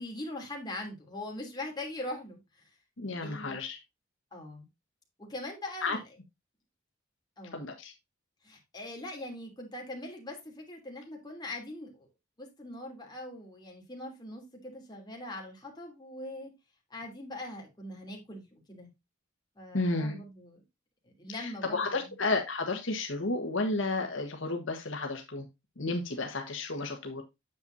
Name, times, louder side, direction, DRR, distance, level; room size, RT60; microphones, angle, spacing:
voice 1, 0.0-2.4 3.2-3.6 4.3-4.7 5.2-6.0 7.4-7.6 8.4-12.1 12.4-16.5 16.9-18.9 19.6-20.6 21.0-22.1, left 1 dB, 20° left, 3.0 m, -41 dB
voice 2, 3.0-3.8 5.8-6.0 7.5-7.9 19.7-20.2 21.3-25.4 25.8-27.2, left 3 dB, 70° left, 1.5 m, -32 dB
9.3 x 7.1 x 2.7 m
head